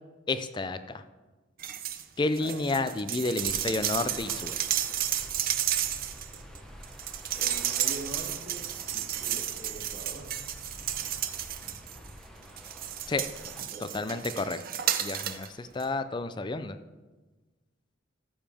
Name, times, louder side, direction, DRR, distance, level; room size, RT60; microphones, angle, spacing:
voice 1, 0.3-1.0 2.2-4.7 13.1-13.2 13.9-14.6 15.0-16.8, left 3 dB, 25° left, 11 dB, 0.4 m, -31 dB
sound 1, 1.6-2.0 2.3-12.1 12.6-15.5 15.8-15.9, right 11 dB, 45° right, 0.6 m, -32 dB
sound 2, 3.4-13.6, equal, 5° left, 0.9 m, -48 dB
voice 2, 7.3-10.3 13.7-14.1, right 2 dB, 80° right, -3 dB, 2.7 m, -43 dB
13.5 x 7.2 x 3.5 m, 1.2 s
head